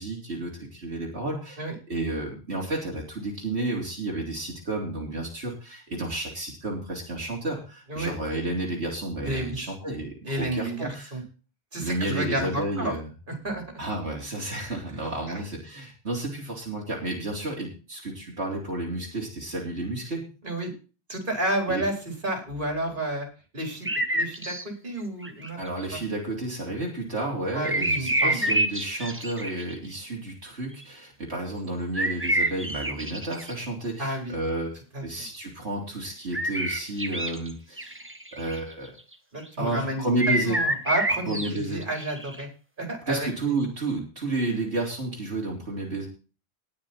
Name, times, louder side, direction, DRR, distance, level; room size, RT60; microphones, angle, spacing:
voice 1, 0.0-1.6 1.9-11.1 11.8-13.1 13.8-20.2 21.7-21.8 25.6-34.8 35.0-38.0 38.3-38.9 39.6-40.6 41.3-41.8 43.1-46.1, right 2 dB, 80° right, -2 dB, 3.6 m, -31 dB
voice 2, 9.2-9.7 10.2-11.2 11.7-12.9 13.3-13.6 20.4-20.7 21.1-22.0 22.2-23.3 23.5-25.6 25.9-26.0 27.5-28.5 34.0-34.3 34.9-35.0 39.3-40.0 40.4-42.5 42.8-43.5, right 1 dB, 50° right, 2 dB, 4.4 m, -31 dB
sound 1, 23.8-24.7 25.2-25.9 27.6-29.8 30.8-30.9 31.9-33.6 36.3-37.5 37.8-39.0 40.2-42.4, right 1 dB, 10° right, 1.4 m, -27 dB
19.5 x 6.7 x 4.3 m, 0.34 s
omnidirectional pair, 1.1 m